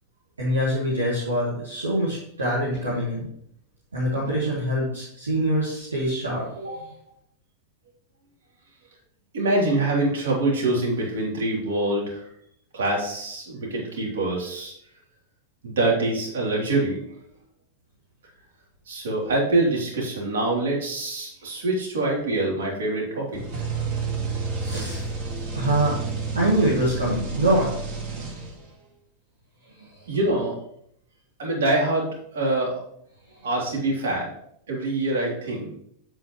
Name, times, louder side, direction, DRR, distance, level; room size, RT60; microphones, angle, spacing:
voice 1, 0.4-3.3 3.9-6.9 24.6-25.1 25.6-26.0 26.3-27.7 28.2-28.3 29.8-29.9, right 1 dB, 75° right, -6 dB, 2.1 m, -24 dB
voice 2, 9.3-12.2 12.7-14.7 15.6-17.0 18.9-23.4 30.1-30.6 31.4-32.7 33.4-34.3 34.7-35.8, right 2 dB, 60° right, -3 dB, 3.1 m, -25 dB
sound 1, 23.3-28.8, right 4 dB, 40° right, 2.0 m, -30 dB
8.2 x 7.5 x 3.1 m, 0.70 s
figure-of-eight pair, 90°, 0 cm